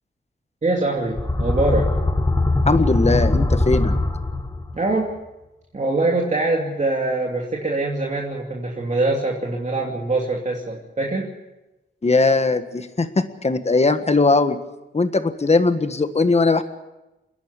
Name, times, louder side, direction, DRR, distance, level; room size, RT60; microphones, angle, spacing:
voice 1, 0.6-1.9 4.7-5.1 5.7-11.3, right 2 dB, 40° right, -1 dB, 2.7 m, -23 dB
sound 1, 1.0-4.8, left 2 dB, 20° left, 1.6 m, -21 dB
voice 2, 2.7-3.9 12.0-14.6 14.9-16.6, left 3 dB, 35° left, 9 dB, 1.6 m, -19 dB
29.0 x 11.0 x 8.3 m, 1.0 s
wide cardioid pair, 90°, 19 cm